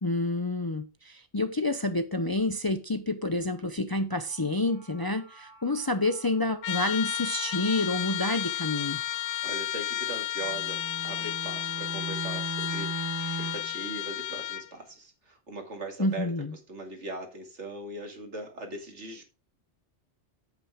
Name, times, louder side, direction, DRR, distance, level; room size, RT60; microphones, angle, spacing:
voice 1, 0.0-9.0 16.0-16.5, left 2 dB, 30° left, 9 dB, 0.5 m, -28 dB
sound 1, 4.2-9.5, right 1 dB, 70° left, 2.4 m, -54 dB
Trumpet, 6.6-14.7, left 13 dB, 85° left, 0.9 m, -33 dB
voice 2, 9.4-16.3 16.7-19.2, right 2 dB, 85° right, 3 dB, 2.5 m, -40 dB
Bowed string instrument, 10.4-13.8, right 3 dB, 25° right, 0.5 m, -37 dB
8.8 x 8.4 x 3.5 m, 0.33 s
omnidirectional pair, 1.2 m